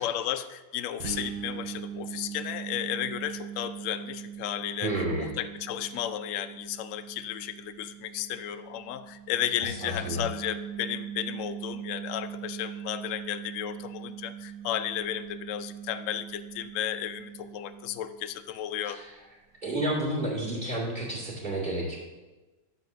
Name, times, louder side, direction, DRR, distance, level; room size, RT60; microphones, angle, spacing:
voice 1, 0.0-19.0, left 11 dB, 80° left, 9 dB, 0.7 m, -34 dB
sound 1, 1.0-18.5, right 9 dB, 85° right, 1.6 m, -41 dB
voice 2, 4.8-5.3 9.6-10.2 18.8-19.1 19.6-22.0, right 1 dB, 25° right, -5 dB, 2.5 m, -31 dB
11.0 x 4.2 x 6.6 m, 1.2 s
omnidirectional pair, 2.0 m